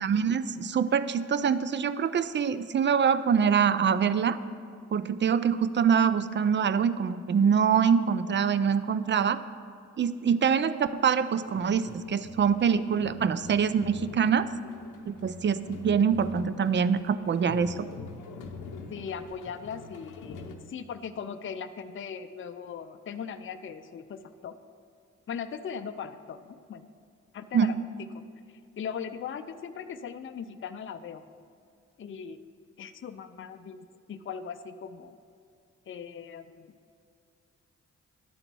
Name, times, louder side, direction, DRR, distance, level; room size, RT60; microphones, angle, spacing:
voice 1, 0.0-4.4 4.9-9.4 10.0-14.5 15.0-17.9 27.5-27.7, right 7 dB, 40° right, 14 dB, 0.4 m, -25 dB
sound 1, 11.4-20.5, left 4 dB, 85° left, 0.7 m, -45 dB
voice 2, 18.9-24.6 25.3-26.9 27.3-27.8 28.8-31.2 32.0-32.4 32.8-35.2 35.9-36.7, left 7 dB, 40° left, 9 dB, 0.5 m, -39 dB
11.0 x 3.9 x 6.1 m, 2.3 s
cardioid pair, 50°, 30 cm